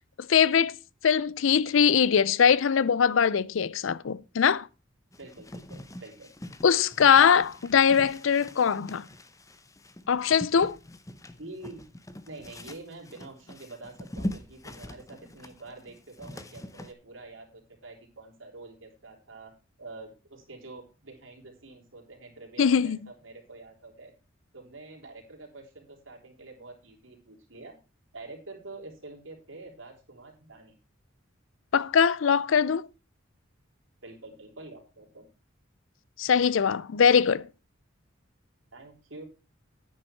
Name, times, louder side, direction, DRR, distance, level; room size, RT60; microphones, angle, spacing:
voice 1, 0.3-0.8 1.0-4.7 6.6-9.1 10.1-10.8 22.6-23.0 31.7-32.9 36.2-37.5, left 7 dB, 70° left, 0.5 m, -22 dB
sound 1, 5.1-16.9, left 1 dB, 15° left, 0.8 m, -42 dB
voice 2, 5.2-6.3 11.4-11.9 12.2-19.5 19.8-24.1 24.5-27.8 28.1-30.7 34.0-35.3 38.7-39.2, right 2 dB, 70° right, 4.0 m, -46 dB
9.9 x 9.4 x 4.5 m
head